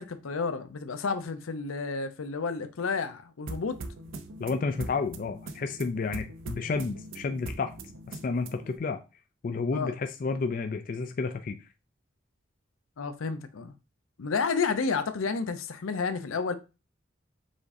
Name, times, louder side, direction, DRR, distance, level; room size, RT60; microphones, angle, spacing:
voice 1, 0.0-3.8 9.7-10.0 13.0-13.7 14.2-16.5, left 4 dB, 90° left, 0.6 m, -31 dB
sound 1, 3.5-8.8, right 2 dB, 80° right, 0.6 m, -42 dB
voice 2, 4.4-7.7 8.1-9.0 9.4-11.6, left 4 dB, 40° left, 0.3 m, -31 dB
5.1 x 3.7 x 2.6 m
head